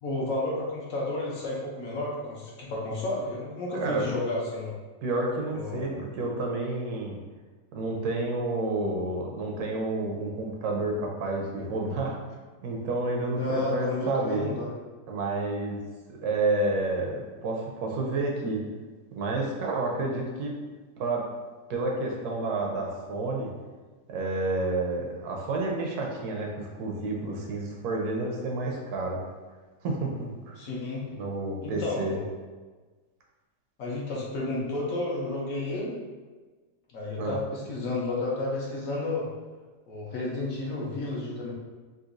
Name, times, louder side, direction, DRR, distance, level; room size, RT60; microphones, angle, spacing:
voice 1, 0.0-4.7 5.5-6.0 13.4-14.7 30.6-31.1 31.6-32.3 33.8-36.0 36.9-39.3 39.9-41.5, left 2 dB, 65° left, -5 dB, 1.1 m, -31 dB
voice 2, 5.0-7.2 7.7-12.2 12.6-14.5 15.1-15.8 16.2-18.6 19.1-20.5 21.0-21.3 21.7-23.5 24.1-29.2 29.8-30.6 31.2-32.2 37.2-37.4, right 2 dB, 75° right, 0 dB, 1.1 m, -30 dB
3.9 x 2.6 x 2.5 m, 1.3 s
omnidirectional pair, 1.7 m